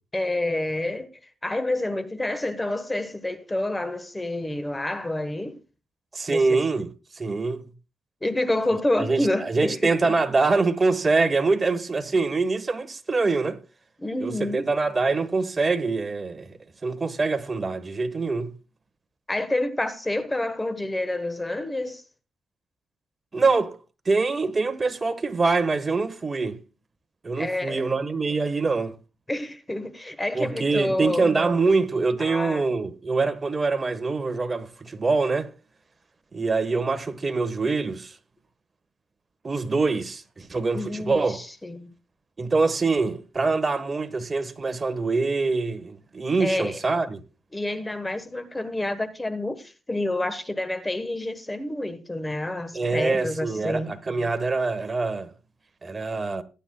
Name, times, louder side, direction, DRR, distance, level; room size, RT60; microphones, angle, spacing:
voice 1, 0.1-1.1 1.4-5.6 6.3-6.6 8.2-10.1 14.0-14.7 19.3-22.0 27.4-27.9 29.3-31.3 32.2-32.6 40.7-41.9 46.4-46.8 47.5-53.9, left 1 dB, 15° left, 1.2 m, -28 dB
voice 2, 6.1-6.9 7.2-7.7 8.9-13.6 14.2-16.5 16.8-18.5 23.3-23.8 24.0-26.6 27.2-28.9 30.3-35.5 36.3-38.1 39.4-41.4 42.4-47.2 52.7-55.3 55.8-56.4, right 3 dB, 30° right, 1.3 m, -24 dB
18.5 x 9.1 x 2.3 m
cardioid pair, 90°, 0 cm